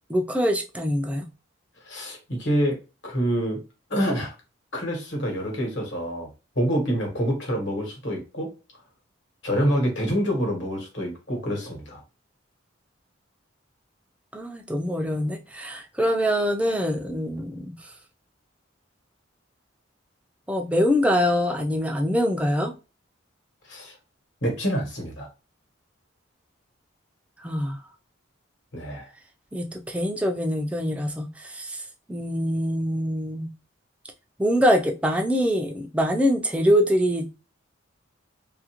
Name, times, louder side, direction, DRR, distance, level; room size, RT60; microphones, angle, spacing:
voice 1, 0.1-1.3 14.3-17.8 20.5-22.7 27.4-27.8 29.5-31.8 32.1-33.5 34.4-37.3, equal, 5° right, 0.4 m, -24 dB
voice 2, 1.8-2.8 3.0-3.6 3.9-4.3 4.7-6.3 6.6-8.5 9.4-12.0 23.7-23.9 24.4-25.3 28.7-29.1, equal, 60° left, 1.2 m, -26 dB
2.7 x 2.5 x 2.8 m
head